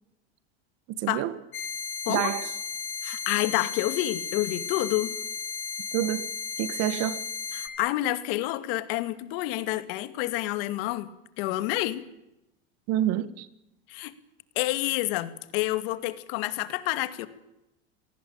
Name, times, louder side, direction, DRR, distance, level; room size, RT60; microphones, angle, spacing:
voice 1, 0.9-1.3 2.1-2.5 5.9-6.3 6.6-7.3 12.9-13.5, right 12 dB, 50° right, 1.9 m, -28 dB
sound 1, 1.5-7.7, left 6 dB, 40° left, 4.2 m, -35 dB
voice 2, 3.0-5.2 7.5-11.1 11.4-12.1 13.9-14.1 14.6-17.3, left 16 dB, 60° left, 2.4 m, -28 dB
29.0 x 18.5 x 8.7 m
supercardioid pair, 145°, 32 cm